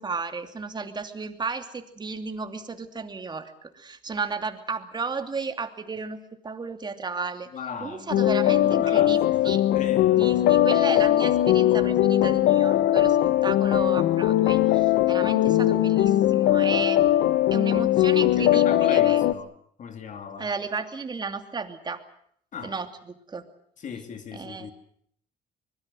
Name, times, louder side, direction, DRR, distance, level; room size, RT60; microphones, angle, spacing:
voice 1, 0.0-7.5 7.8-9.6 10.2-13.2 13.4-17.0 17.5-19.2 20.4-22.0 22.6-23.4 24.3-24.7, right 4 dB, 25° right, 2.7 m, -33 dB
voice 2, 7.5-8.1 8.6-10.7 18.4-19.5 19.8-20.5 22.5-22.7 23.8-24.7, left 6 dB, 50° left, 3.2 m, -37 dB
sound 1, 8.1-19.3, left 13 dB, 80° left, 1.2 m, -20 dB
24.5 x 21.5 x 7.7 m
cardioid pair, 110°, 17 cm